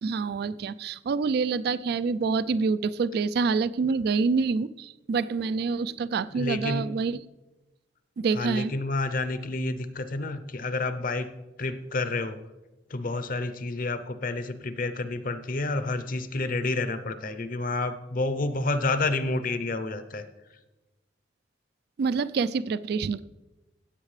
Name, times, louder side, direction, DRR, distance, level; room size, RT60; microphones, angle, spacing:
voice 1, 0.0-7.2 8.2-8.7 22.0-23.2, right 4 dB, 60° right, 17 dB, 0.3 m, -27 dB
voice 2, 6.3-6.9 8.3-11.3 11.6-12.4 12.9-20.2, left 2 dB, 50° left, 11 dB, 0.7 m, -29 dB
16.0 x 8.1 x 3.3 m, 1.1 s
head